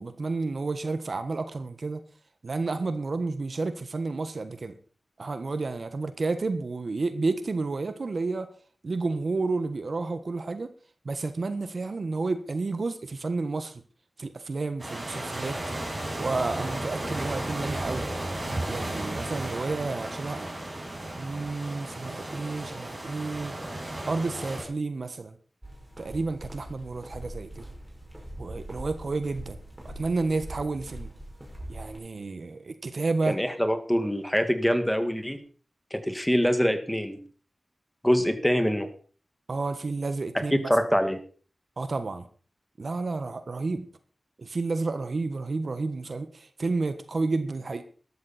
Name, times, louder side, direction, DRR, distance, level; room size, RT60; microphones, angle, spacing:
voice 1, 0.0-2.0 2.4-4.7 5.2-8.5 8.8-10.7 11.0-13.8 14.2-15.6 16.2-18.1 18.7-20.5 21.2-23.5 24.1-25.4 26.0-27.7 28.4-29.6 29.8-31.1 31.7-33.4 39.5-40.7 41.8-42.3 42.8-43.9 44.4-47.8, right 3 dB, 65° right, 10 dB, 1.4 m, -31 dB
sound 1, 14.8-24.6, right 1 dB, 35° right, 6.6 m, -34 dB
sound 2, 25.6-32.0, right 1 dB, 15° right, 6.0 m, -42 dB
voice 2, 33.3-35.4 35.9-37.2 38.0-38.9 40.3-41.2, equal, 5° left, 8 dB, 2.0 m, -24 dB
13.0 x 13.0 x 4.3 m, 0.40 s
wide cardioid pair, 60°, 0 cm